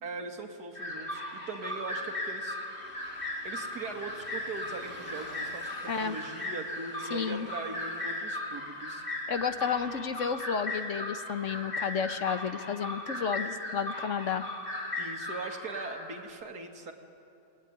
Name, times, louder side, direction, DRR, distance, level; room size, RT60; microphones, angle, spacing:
voice 1, 0.0-2.6 3.4-5.7 6.0-9.0 15.0-16.9, right 3 dB, 85° right, 3 dB, 2.7 m, -40 dB
sound 1, 0.7-16.3, left 1 dB, 35° left, 2.8 m, -37 dB
voice 2, 7.1-7.5 9.3-14.5, left 6 dB, 55° left, 9 dB, 1.3 m, -31 dB
28.5 x 20.5 x 9.6 m, 2.7 s
omnidirectional pair, 1.6 m